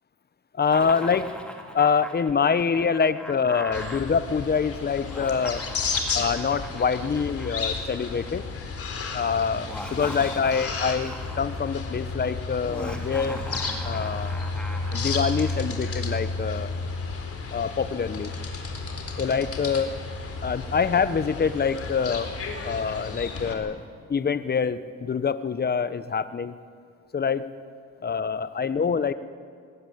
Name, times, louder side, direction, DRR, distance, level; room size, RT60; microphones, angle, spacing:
voice 1, 0.5-1.3 1.7-5.7 6.1-8.4 9.1-13.4 13.8-14.4 14.9-16.7 17.5-18.3 19.2-19.9 20.4-22.3 22.6-23.8 24.1-26.5 27.1-27.5 28.0-29.1, left 6 dB, 35° left, 13 dB, 1.1 m, -25 dB
Laughter, 0.6-4.0 5.0-8.3 9.5-11.5 12.6-15.6, equal, 5° left, 2.8 m, -40 dB
sound 1, 3.7-23.5, left 4 dB, 50° left, 3.7 m, -32 dB
20.5 x 17.5 x 8.8 m, 2.2 s
cardioid pair, 90°, 30 cm